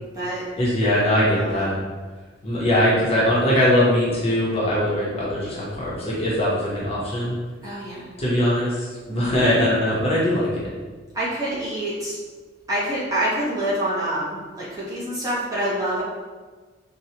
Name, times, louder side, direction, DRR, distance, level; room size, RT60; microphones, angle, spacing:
voice 1, 0.6-1.8 2.4-7.4 8.2-10.7, left 1 dB, 30° left, -7 dB, 0.8 m, -21 dB
voice 2, 7.6-8.1 9.1-9.7 11.1-12.2 12.7-16.0, right 1 dB, 20° right, -9 dB, 0.9 m, -26 dB
4.3 x 2.2 x 2.8 m, 1.4 s
head